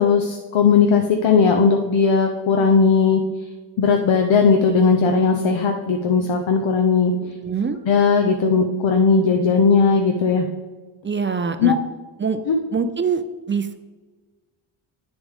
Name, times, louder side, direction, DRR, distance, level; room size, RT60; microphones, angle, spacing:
voice 1, 0.0-3.2 3.8-7.1 7.9-10.4 11.6-11.8 12.5-12.6, left 5 dB, 65° left, 3 dB, 0.9 m, -17 dB
voice 2, 7.2-7.8 11.0-11.8 12.2-12.4 12.7-13.2 13.5-13.8, right 6 dB, 25° right, 9 dB, 0.4 m, -24 dB
9.8 x 7.0 x 3.6 m, 1.3 s
wide cardioid pair, 145°, 49 cm